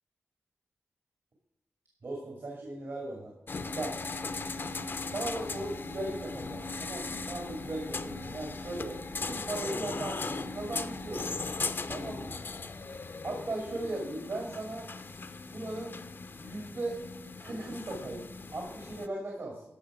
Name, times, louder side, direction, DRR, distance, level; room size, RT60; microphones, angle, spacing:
voice 1, 2.0-3.3 3.7-4.0 5.1-11.4 11.9-12.3 13.2-14.9 15.5-15.9 16.4-17.0 17.3-18.2 18.5-19.6, right 2 dB, 70° right, -1 dB, 2.5 m, -37 dB
sound 1, 3.5-19.1, left 3 dB, 50° left, 0.6 m, -38 dB
14.5 x 5.7 x 5.0 m, 0.88 s
wide cardioid pair, 70°, 5 cm